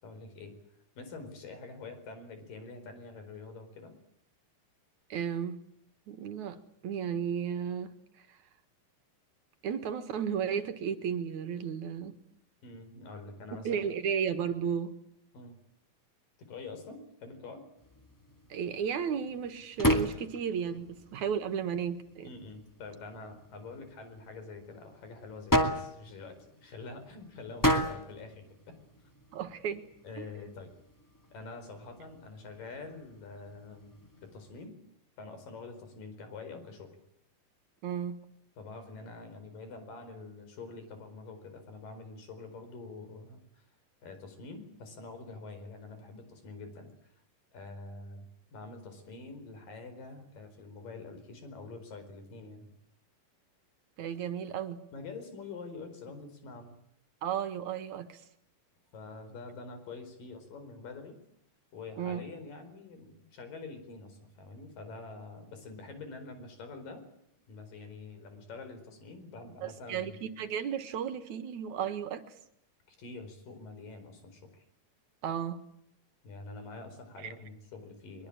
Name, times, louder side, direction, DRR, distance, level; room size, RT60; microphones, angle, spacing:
voice 1, 0.0-0.6 1.0-4.0 12.6-13.8 15.3-15.6 16.4-17.7 22.2-28.8 30.0-30.7 31.3-34.0 34.2-34.8 35.2-36.9 38.6-43.6 44.0-47.1 47.5-52.7 54.9-56.8 58.9-61.2 61.7-67.1 67.5-70.2 72.9-74.7 76.2-78.3, left 3 dB, 85° left, 9 dB, 6.2 m, -46 dB
voice 2, 5.1-5.6 6.1-6.6 6.8-7.9 9.6-12.2 13.5-14.9 18.5-22.3 29.3-29.8 37.8-38.2 54.0-54.8 57.2-58.2 62.0-62.2 69.6-72.3 75.2-75.6, right 8 dB, 65° right, 11 dB, 2.8 m, -34 dB
sound 1, 17.8-34.7, equal, 5° left, 1.6 m, -36 dB
23.0 x 22.5 x 8.7 m, 0.77 s
omnidirectional pair, 3.8 m